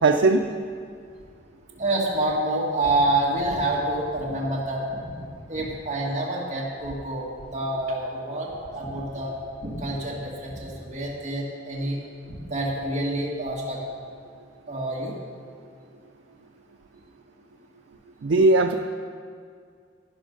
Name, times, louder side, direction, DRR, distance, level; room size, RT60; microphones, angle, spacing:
voice 1, 0.0-0.5 18.2-18.7, right 3 dB, 90° right, 4 dB, 0.5 m, -18 dB
voice 2, 1.8-9.4 9.6-12.0 12.3-13.8 14.7-15.1, right 1 dB, 40° right, -4 dB, 1.8 m, -27 dB
12.5 x 10.5 x 5.2 m, 2.2 s
head